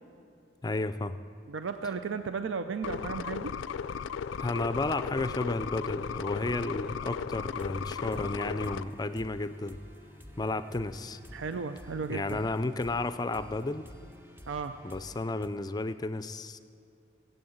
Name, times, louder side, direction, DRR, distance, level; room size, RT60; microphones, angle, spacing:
voice 1, 0.6-1.2 4.4-9.8 10.4-11.2 12.1-13.9 14.8-16.6, left 2 dB, 20° left, 12 dB, 0.4 m, -32 dB
voice 2, 1.5-3.5 11.3-12.4 14.5-14.8, right 5 dB, 85° right, 8 dB, 0.5 m, -34 dB
sound 1, 2.8-8.8, left 6 dB, 85° left, 0.4 m, -36 dB
sound 2, 7.6-15.5, equal, 10° right, 0.8 m, -50 dB
18.0 x 7.9 x 7.8 m, 2.6 s
head